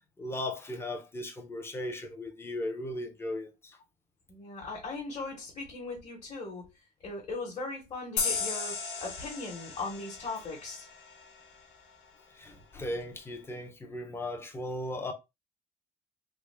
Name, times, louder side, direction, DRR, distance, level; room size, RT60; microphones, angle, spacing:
voice 1, 0.2-3.5 12.4-15.1, left 1 dB, 15° left, 0.5 m, -37 dB
voice 2, 4.3-6.6 7.0-10.9, left 3 dB, 35° left, 1.1 m, -39 dB
sound 1, 8.2-11.5, left 5 dB, 90° left, 0.9 m, -35 dB
3.4 x 2.1 x 3.3 m
cardioid pair, 170°, 18 cm